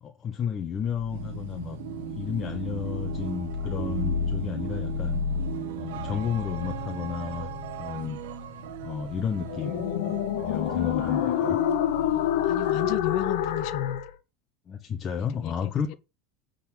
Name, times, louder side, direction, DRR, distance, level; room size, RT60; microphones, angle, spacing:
voice 1, 0.0-1.8 2.2-5.2 5.7-7.5 7.8-8.2 8.8-9.8 10.4-11.6 14.7-15.9, left 7 dB, 25° left, 0.9 m, -32 dB
sound 1, 0.9-14.1, left 9 dB, 80° left, 1.6 m, -30 dB
sound 2, 1.1-13.0, right 15 dB, 85° right, 0.8 m, -38 dB
voice 2, 12.1-14.0 15.2-15.9, left 17 dB, 55° left, 0.8 m, -34 dB
9.3 x 4.0 x 6.3 m
supercardioid pair, 150°, 0 cm